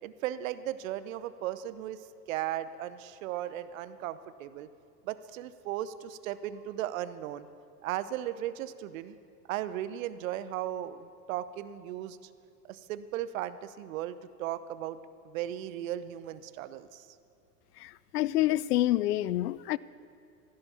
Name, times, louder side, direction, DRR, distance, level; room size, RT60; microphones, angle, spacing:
voice 1, 0.0-2.0 2.3-4.7 5.0-7.5 7.8-9.2 9.5-12.2 12.6-15.0 15.2-17.1, right 12 dB, 55° right, 0.8 m, -36 dB
voice 2, 17.8-19.8, left 14 dB, 65° left, 0.6 m, -27 dB
15.5 x 11.0 x 7.0 m
hypercardioid pair, 100°, 49 cm